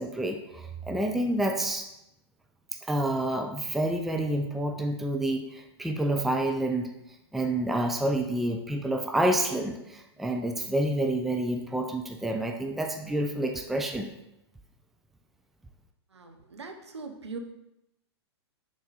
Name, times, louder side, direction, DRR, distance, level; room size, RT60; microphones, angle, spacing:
voice 1, 0.0-1.9 2.9-6.9 7.3-14.1, right 1 dB, ahead, 3 dB, 0.4 m, -28 dB
voice 2, 16.1-17.4, right 4 dB, 80° right, 4 dB, 0.9 m, -41 dB
6.5 x 4.0 x 4.0 m, 0.86 s
figure-of-eight pair, 110°, 14 cm